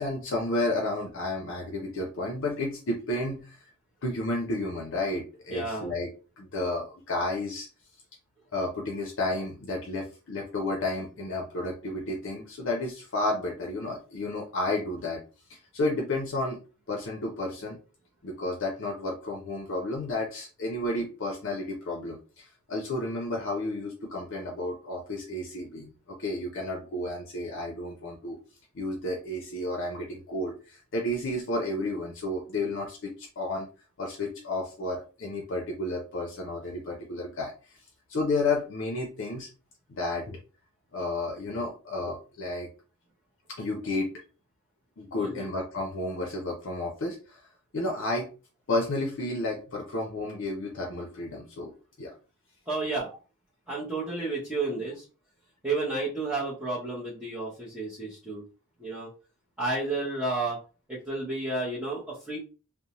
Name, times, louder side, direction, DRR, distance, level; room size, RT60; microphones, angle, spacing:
voice 1, 0.0-3.7 4.0-6.1 6.4-7.7 8.5-15.2 15.5-16.6 16.9-17.8 18.2-28.4 28.7-33.7 34.0-37.8 38.1-39.5 39.9-40.4 40.9-42.7 43.6-44.1 45.0-47.4 47.7-48.3 48.7-51.7 52.0-52.1, left 2 dB, 60° left, 0 dB, 0.5 m, -32 dB
voice 2, 5.5-5.9 45.2-45.5 52.7-53.1 53.7-55.0 55.6-58.4 58.8-59.1 59.6-60.6 60.9-62.4, right 2 dB, 5° right, -9 dB, 0.7 m, -31 dB
2.7 x 2.0 x 2.9 m, 0.34 s
head